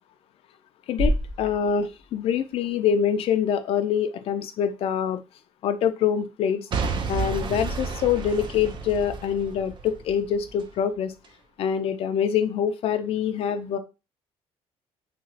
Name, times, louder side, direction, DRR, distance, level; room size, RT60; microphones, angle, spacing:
voice 1, 0.9-5.2 5.6-6.7 7.1-11.1 11.6-13.8, left 8 dB, 60° left, 8 dB, 0.4 m, -25 dB
sound 1, 1.0-3.1, equal, 70° right, 1.0 m, -29 dB
Boom / Shatter / Crushing, 6.7-10.7 11.2-11.3, right 5 dB, 45° right, 0.5 m, -31 dB
2.9 x 2.7 x 2.7 m, 0.28 s
cardioid pair, 105°, 11 cm